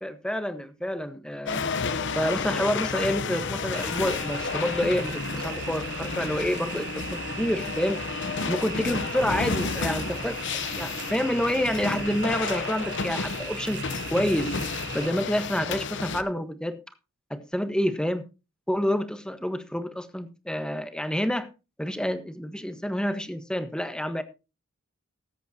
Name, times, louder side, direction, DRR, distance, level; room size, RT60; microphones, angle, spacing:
voice 1, 0.0-1.7 2.1-8.0 8.5-10.4 10.8-13.8 14.1-14.6 14.9-16.8 17.3-18.3 18.7-21.5 21.8-24.2, equal, 5° left, 9 dB, 1.3 m, -28 dB
sound 1, 1.5-16.2, left 5 dB, 60° left, 1.0 m, -31 dB
sound 2, 3.7-15.1, right 9 dB, 60° right, 0.9 m, -39 dB
20.0 x 8.3 x 2.9 m, 0.28 s
head